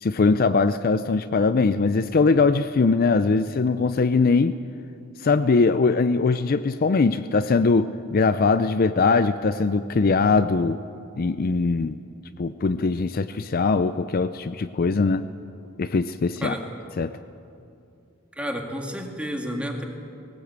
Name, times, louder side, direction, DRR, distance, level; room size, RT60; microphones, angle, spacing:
voice 1, 0.0-4.6 5.2-10.8 11.2-12.0 12.4-15.2 15.8-16.5 17.0-17.1, left 4 dB, 45° left, 11 dB, 0.4 m, -21 dB
voice 2, 18.4-19.8, equal, 5° right, 3 dB, 1.8 m, -30 dB
19.0 x 19.0 x 8.2 m, 2.6 s
head